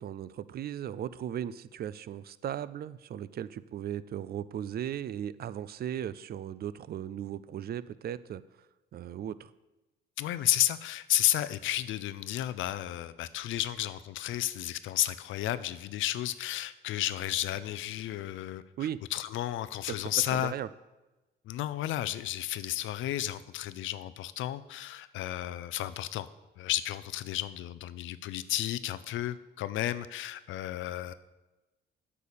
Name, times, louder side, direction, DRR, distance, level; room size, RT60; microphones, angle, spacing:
voice 1, 0.0-8.4 8.9-9.5 18.8-19.0 19.9-20.7, right 10 dB, 50° right, 17 dB, 0.4 m, -37 dB
voice 2, 10.2-18.6 19.1-20.5 21.5-26.3 26.6-31.1, left 13 dB, 80° left, 14 dB, 0.5 m, -32 dB
8.3 x 5.5 x 6.7 m, 1.1 s
cardioid pair, 90°, 20 cm